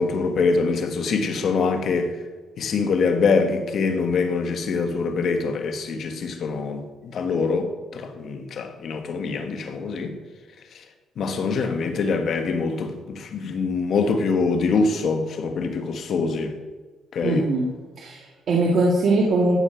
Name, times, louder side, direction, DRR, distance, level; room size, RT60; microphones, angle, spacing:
voice 1, 0.0-2.1 2.6-10.2 11.2-16.6 17.1-17.5, left 4 dB, 60° left, 1.4 m, -24 dB
voice 2, 17.2-17.7 18.0-19.6, right 2 dB, 60° right, 1.8 m, -21 dB
14.5 x 6.6 x 4.6 m
cardioid pair, 90°, 0 cm